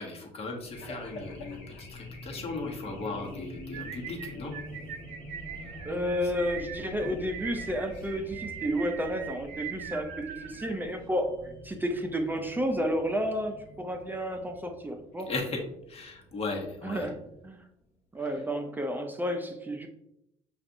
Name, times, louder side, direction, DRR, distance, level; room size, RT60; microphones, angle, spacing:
voice 1, 0.0-4.5 7.0-7.1 15.3-15.6 15.9-17.1 18.2-18.3, left 3 dB, 40° left, 1 dB, 1.1 m, -37 dB
Race car auto racing / Alarm, 0.6-17.6, equal, 75° left, 1.3 m, -46 dB
sound 1, 3.7-11.1, right 8 dB, 80° right, 0.4 m, -42 dB
voice 2, 5.8-11.3 11.6-15.3 16.8-17.1 17.4-17.7 18.1-19.9, equal, 10° right, 4 dB, 0.5 m, -31 dB
5.8 x 2.5 x 2.6 m, 0.82 s
supercardioid pair, 85°, 15 cm